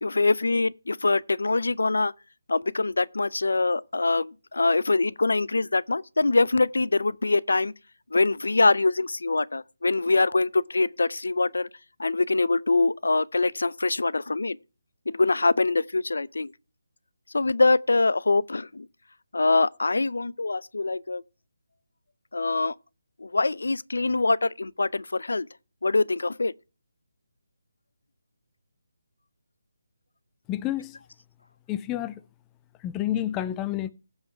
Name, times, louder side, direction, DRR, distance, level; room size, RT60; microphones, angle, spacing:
voice 1, 0.0-2.1 2.5-7.7 8.1-11.7 12.0-14.6 15.1-16.5 17.3-18.9 19.3-21.2 22.3-22.7 23.2-25.5 25.8-26.5, left 3 dB, 85° left, 0.5 m, -24 dB
voice 2, 30.5-31.0 31.7-32.2 32.8-33.9, left 12 dB, 15° left, 0.4 m, -29 dB
16.0 x 5.6 x 4.4 m
figure-of-eight pair, 165°, 0 cm